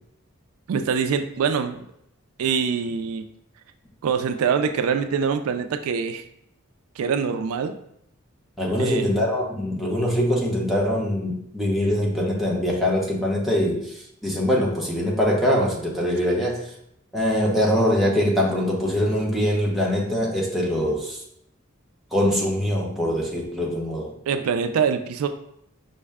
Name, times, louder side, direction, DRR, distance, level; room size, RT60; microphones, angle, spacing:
voice 1, 0.7-1.8 2.4-3.3 4.0-6.2 7.0-7.7 8.8-9.2 24.3-25.3, right 6 dB, 85° right, 8 dB, 0.3 m, -24 dB
voice 2, 8.6-16.7 17.1-21.2 22.1-24.1, equal, ahead, -4 dB, 0.8 m, -23 dB
5.4 x 2.1 x 3.5 m, 0.75 s
head